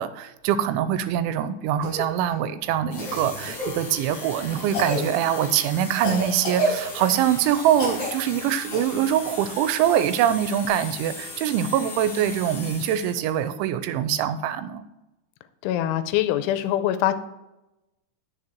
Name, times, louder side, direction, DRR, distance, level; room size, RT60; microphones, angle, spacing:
voice 1, 0.0-14.8, right 10 dB, 85° right, 12 dB, 3.0 m, -24 dB
Cough, 1.8-2.0 3.0-3.7 4.7-5.0 6.0-7.2 7.7-8.1 8.7-8.8 10.7-10.8, equal, 25° left, 4.3 m, -28 dB
sound 1, 2.9-13.5, left 3 dB, 45° left, 3.8 m, -39 dB
voice 2, 15.6-17.1, left 12 dB, 85° left, 11 dB, 3.1 m, -23 dB
9.7 x 6.7 x 4.4 m, 0.95 s
omnidirectional pair, 5.4 m